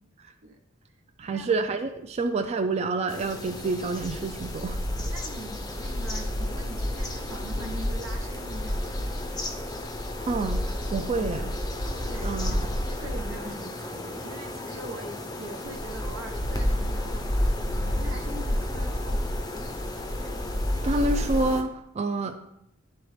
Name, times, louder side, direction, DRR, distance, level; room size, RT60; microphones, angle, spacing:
voice 1, 1.2-5.1 10.3-10.6 10.9-11.5 12.2-12.6 20.8-22.4, right 3 dB, 35° right, 6 dB, 0.3 m, -28 dB
sound 1, 3.1-21.6, left 1 dB, 20° left, 0.5 m, -30 dB
voice 2, 5.1-9.3 12.1-19.3, right 1 dB, 90° right, 3 dB, 1.0 m, -42 dB
10.5 x 3.9 x 3.2 m, 0.78 s
head